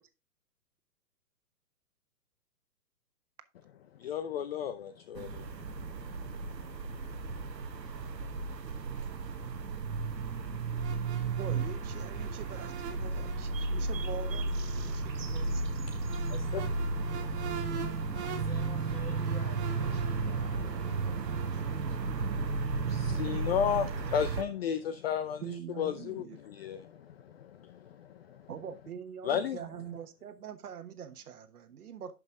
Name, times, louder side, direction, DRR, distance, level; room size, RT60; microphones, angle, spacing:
voice 1, 3.9-7.4 16.3-17.4 20.7-20.8 21.6-21.9 22.3-28.5 29.2-29.6, left 8 dB, 40° left, 0.6 m, -35 dB
sound 1, 5.2-24.4, right 3 dB, 85° right, 1.2 m, -34 dB
sound 2, 10.8-21.8, right 7 dB, 45° right, 1.7 m, -46 dB
voice 2, 11.4-16.0 25.4-26.4 28.5-32.1, right 8 dB, 65° right, 1.3 m, -44 dB
voice 3, 17.2-22.3, left 3 dB, 20° left, 4.1 m, -51 dB
11.0 x 5.5 x 3.7 m
figure-of-eight pair, 125°, 49 cm